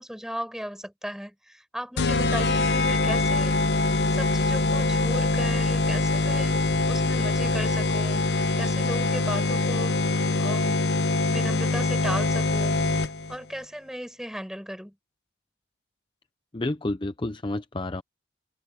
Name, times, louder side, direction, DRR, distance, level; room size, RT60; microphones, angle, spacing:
voice 1, 0.0-3.6 4.1-10.0 10.4-10.8 11.3-14.9, equal, 5° right, 6.7 m, -36 dB
sound 1, 2.0-13.4, left 2 dB, 70° left, 0.8 m, -24 dB
voice 2, 16.5-18.0, left 2 dB, 30° left, 0.6 m, -30 dB
head